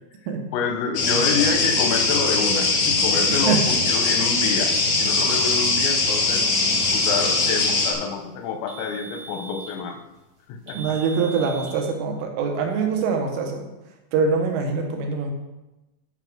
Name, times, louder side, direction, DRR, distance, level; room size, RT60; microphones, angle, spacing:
voice 1, 0.5-4.7 5.0-6.5 6.9-10.0 10.5-10.8, left 5 dB, 90° left, 6 dB, 3.7 m, -27 dB
sound 1, 0.9-7.9, left 3 dB, 55° left, 1.9 m, -21 dB
voice 2, 3.3-3.6 10.8-13.7 14.1-15.3, right 5 dB, 80° right, 3 dB, 3.8 m, -24 dB
sound 2, 4.7-5.8 6.7-7.8 8.7-9.8 10.7-11.8, right 2 dB, 45° right, 2.2 m, -40 dB
9.8 x 5.7 x 6.1 m, 1.0 s
omnidirectional pair, 5.7 m